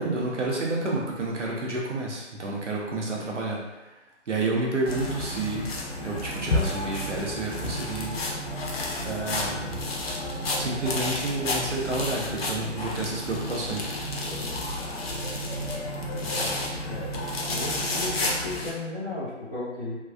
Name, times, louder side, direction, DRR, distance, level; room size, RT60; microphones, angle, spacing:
voice 1, 0.0-3.9 4.3-8.2 9.0-9.8 10.6-14.1, right 2 dB, 80° right, -3 dB, 0.9 m, -30 dB
sound 1, 4.9-18.7, left 1 dB, 55° left, 0.6 m, -31 dB
voice 2, 16.0-16.5 16.8-17.1 17.4-20.0, left 2 dB, 5° left, -23 dB, 0.5 m, -35 dB
3.4 x 2.2 x 2.2 m, 1.1 s
figure-of-eight pair, 150°, 36 cm